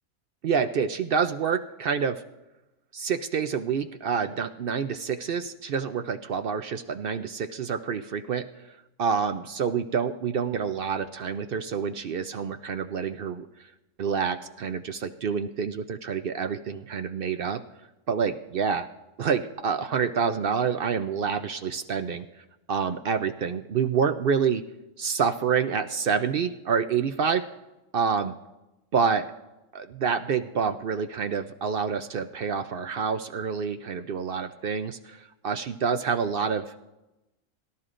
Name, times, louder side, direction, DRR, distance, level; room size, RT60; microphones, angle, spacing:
voice 1, 0.4-2.2 2.9-8.5 9.0-13.5 14.0-17.6 18.1-18.9 19.2-22.3 22.7-24.6 25.0-27.5 27.9-28.3 28.9-29.3 29.7-36.7, right 6 dB, 60° right, 9 dB, 0.6 m, -27 dB
23.0 x 12.5 x 2.5 m, 0.99 s
omnidirectional pair, 1.5 m